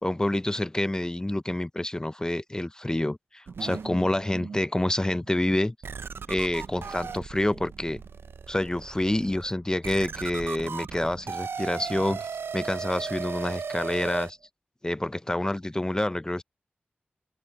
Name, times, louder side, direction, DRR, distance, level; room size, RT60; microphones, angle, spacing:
voice 1, 0.0-5.7 6.3-8.0 8.5-14.4 14.8-16.4, left 1 dB, 20° left, 0.5 m, -28 dB
sound 1, 3.5-4.6 5.2-5.3 5.8-14.3, right 5 dB, 75° right, 0.4 m, -37 dB
open air
cardioid pair, 40°, 4 cm